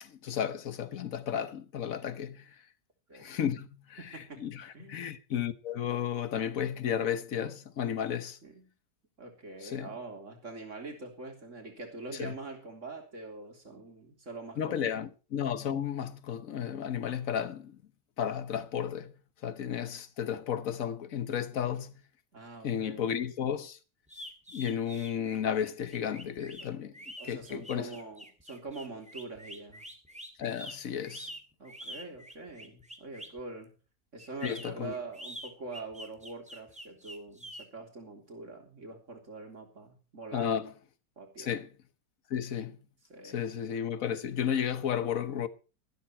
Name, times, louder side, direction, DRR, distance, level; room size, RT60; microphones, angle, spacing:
voice 1, 0.0-2.6 3.1-8.4 9.6-10.0 12.1-12.3 14.6-17.8 18.2-19.1 19.4-21.9 22.6-23.8 24.5-26.9 27.2-27.9 30.4-31.3 34.4-34.9 40.3-40.7 41.4-41.7 42.3-42.8 43.2-45.5, left 8 dB, 55° left, 1.3 m, -33 dB
voice 2, 4.0-4.4 4.7-5.0 8.4-8.6 9.2-15.0 22.3-23.2 26.6-26.7 27.2-29.8 31.6-33.7 34.1-40.6 41.2-41.6 43.1-43.5, right 3 dB, 40° right, 3.8 m, -44 dB
sound 1, 24.1-33.4 34.2-37.6, equal, 5° right, 2.2 m, -46 dB
14.0 x 13.0 x 4.5 m
omnidirectional pair, 2.0 m